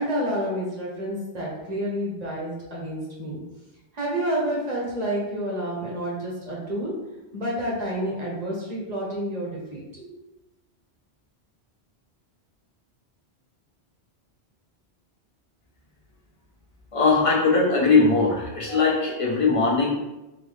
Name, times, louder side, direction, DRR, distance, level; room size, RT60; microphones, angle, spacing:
voice 1, 0.0-3.4 3.9-6.9 7.3-10.2, equal, 40° right, -4 dB, 1.2 m, -29 dB
voice 2, 16.9-19.9, left 4 dB, 35° left, -4 dB, 0.9 m, -20 dB
4.0 x 3.0 x 3.3 m, 1.0 s
omnidirectional pair, 1.1 m